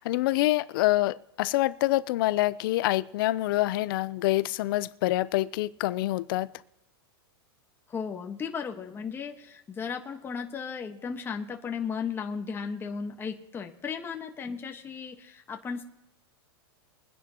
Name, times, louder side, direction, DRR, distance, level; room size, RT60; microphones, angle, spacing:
voice 1, 0.0-6.5, left 17 dB, 60° left, 17 dB, 0.6 m, -26 dB
voice 2, 7.9-15.8, left 6 dB, 15° left, 3 dB, 1.4 m, -35 dB
23.5 x 10.0 x 3.0 m, 0.95 s
supercardioid pair, 135°, 13 cm